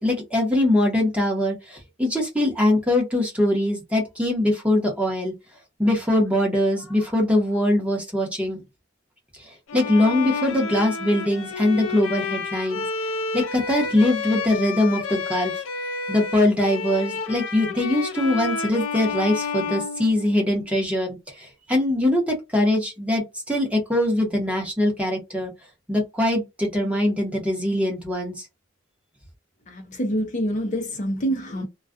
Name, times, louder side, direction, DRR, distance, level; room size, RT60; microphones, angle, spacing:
voice 1, 0.0-5.3 5.8-8.6 9.4-12.8 13.3-15.5 16.1-25.5 25.9-28.5, left 1 dB, 5° right, 0.9 m, -22 dB
Bowed string instrument, 9.7-20.7, left 4 dB, 80° left, 0.5 m, -30 dB
voice 2, 29.7-31.6, equal, 40° left, 0.6 m, -26 dB
2.3 x 2.3 x 2.4 m
head